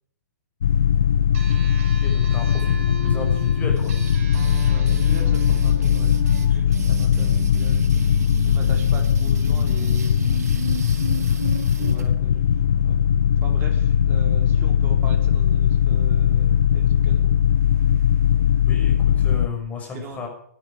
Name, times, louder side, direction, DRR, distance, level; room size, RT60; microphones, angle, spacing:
sound 1, 0.6-19.5, left 8 dB, 70° left, 1.3 m, -19 dB
sound 2, 1.3-6.5, right 2 dB, 50° right, 5.3 m, -38 dB
voice 1, 2.0-3.9 18.7-20.3, left 4 dB, 15° left, 2 dB, 6.3 m, -33 dB
sound 3, 3.8-12.1, right 7 dB, 75° right, 4.7 m, -36 dB
voice 2, 4.5-7.9 8.4-10.1 11.8-12.4 12.8-13.0 13.4-17.3 19.9-20.3, right 3 dB, 25° right, 3 dB, 4.4 m, -40 dB
19.5 x 12.5 x 5.0 m, 0.65 s
hypercardioid pair, 140°, 9 cm